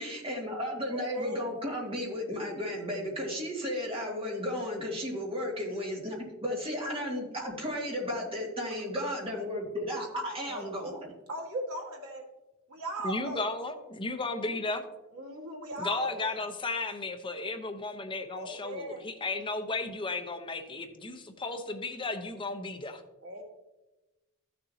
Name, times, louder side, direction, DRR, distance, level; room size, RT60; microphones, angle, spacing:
voice 1, 0.0-11.0, left 1 dB, 25° right, -2 dB, 2.3 m, -34 dB
voice 2, 0.8-1.5 10.5-11.0 11.3-12.2 12.7-13.5 15.1-16.4 18.3-19.0 23.2-23.4, right 1 dB, 70° right, 0 dB, 2.0 m, -38 dB
voice 3, 13.0-14.8 15.8-23.0, left 3 dB, 20° left, 6 dB, 0.9 m, -34 dB
14.0 x 6.8 x 2.8 m, 1.0 s
head